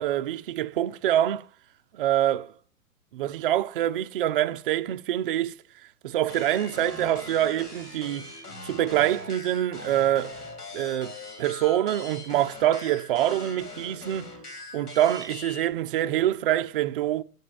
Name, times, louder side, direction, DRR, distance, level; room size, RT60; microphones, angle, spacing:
voice 1, 0.0-1.5 1.9-2.5 3.1-5.6 6.0-8.3 8.6-10.4 10.7-14.3 14.7-17.2, right 12 dB, 40° right, 0.5 m, -25 dB
sound 1, 6.3-15.7, left 2 dB, 85° left, 2.4 m, -41 dB
7.8 x 5.9 x 6.9 m
figure-of-eight pair, 115°, 45 cm